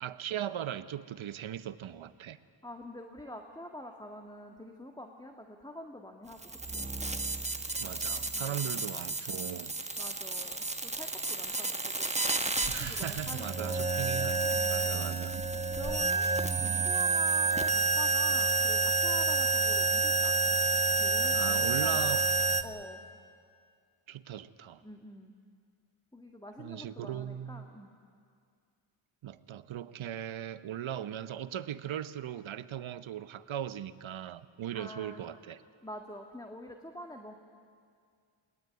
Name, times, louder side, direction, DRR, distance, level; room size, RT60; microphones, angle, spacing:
voice 1, 0.0-2.4 7.8-9.8 12.7-15.4 16.6-16.9 21.3-22.3 24.1-24.8 26.6-27.7 29.2-35.6, right 10 dB, 70° right, 14 dB, 1.0 m, -39 dB
voice 2, 2.6-6.4 6.7-6.9 8.3-8.8 10.0-13.8 14.5-14.8 15.7-16.4 16.6-20.3 21.0-22.2 22.6-23.0 24.8-25.3 26.1-27.9 34.7-35.2 35.8-37.3, left 1 dB, 10° left, 3 dB, 1.7 m, -46 dB
sound 1, 6.3-22.6, right 3 dB, 15° right, 1.3 m, -29 dB
21.5 x 19.0 x 9.6 m, 2.2 s
cardioid pair, 60°, 50 cm